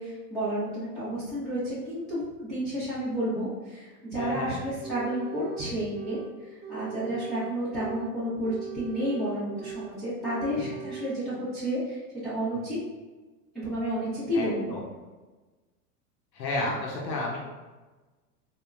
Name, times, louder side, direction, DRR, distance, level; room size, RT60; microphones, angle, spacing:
voice 1, 0.0-12.8 13.5-14.8, equal, ahead, -13 dB, 0.5 m, -31 dB
voice 2, 4.1-4.5 10.6-10.8 12.5-12.7 14.3-14.8 16.3-17.4, left 2 dB, 90° left, -2 dB, 0.8 m, -32 dB
sound 1, 4.2-4.5 4.8-6.3 6.6-8.1 8.4-9.9 10.2-11.2, right 8 dB, 70° right, 0.7 m, -40 dB
3.5 x 2.1 x 2.4 m, 1.2 s
hypercardioid pair, 115°, 49 cm